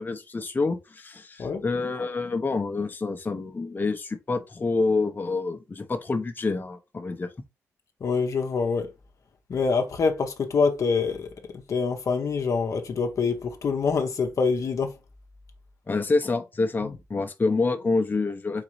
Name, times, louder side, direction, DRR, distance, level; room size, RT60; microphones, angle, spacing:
voice 1, 0.0-7.3 15.9-18.6, left 3 dB, 30° left, 0.8 m, -27 dB
voice 2, 8.0-8.9 9.5-11.3 11.7-14.9 16.8-16.9, left 5 dB, 55° left, 0.8 m, -25 dB
4.0 x 3.8 x 3.1 m
cardioid pair, 65°, 6 cm